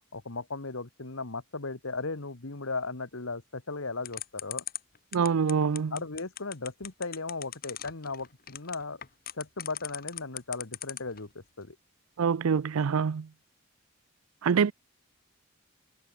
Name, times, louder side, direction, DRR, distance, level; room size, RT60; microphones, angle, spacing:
voice 1, 0.1-4.6 5.9-9.0 9.3-11.8, left 3 dB, 70° left, 1.6 m, -36 dB
sound 1, 4.0-11.2, left 13 dB, 45° left, 1.3 m, -38 dB
voice 2, 5.1-6.0 12.2-13.3 14.4-14.7, right 6 dB, 85° right, 0.5 m, -25 dB
head